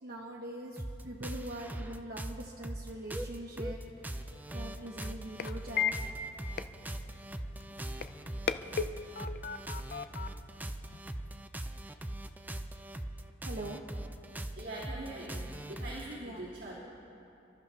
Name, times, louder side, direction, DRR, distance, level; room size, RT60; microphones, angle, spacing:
voice 1, 0.0-3.8 4.1-5.9 13.4-13.9 16.2-16.7, right 1 dB, 55° right, -1 dB, 0.9 m, -43 dB
sound 1, 0.8-16.2, right 1 dB, 10° right, 0.4 m, -41 dB
sound 2, 3.6-11.5, left 7 dB, 50° left, 0.4 m, -39 dB
voice 2, 14.5-16.8, right 1 dB, 80° right, -8 dB, 3.3 m, -42 dB
30.0 x 13.0 x 2.8 m, 2.8 s
head